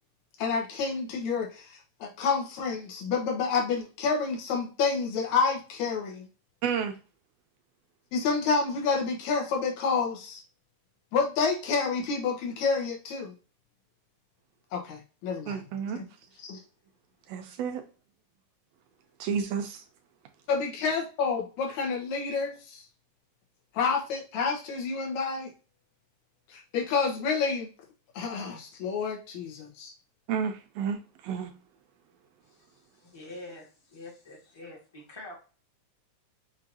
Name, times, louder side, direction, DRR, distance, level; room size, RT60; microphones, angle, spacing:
voice 1, 0.4-6.3 8.1-10.4 11.1-13.3 14.7-15.6 16.0-16.1 16.4-16.6 20.5-22.9 23.7-25.5 26.5-27.7 28.1-29.9, left 5 dB, 75° left, 2.4 m, -29 dB
voice 2, 6.6-7.0 15.5-16.0 17.3-17.8 19.2-19.8 30.3-31.5, right 7 dB, 80° right, 1.6 m, -31 dB
voice 3, 32.4-35.3, left 2 dB, 20° left, 0.6 m, -46 dB
6.1 x 2.7 x 2.6 m
omnidirectional pair, 3.4 m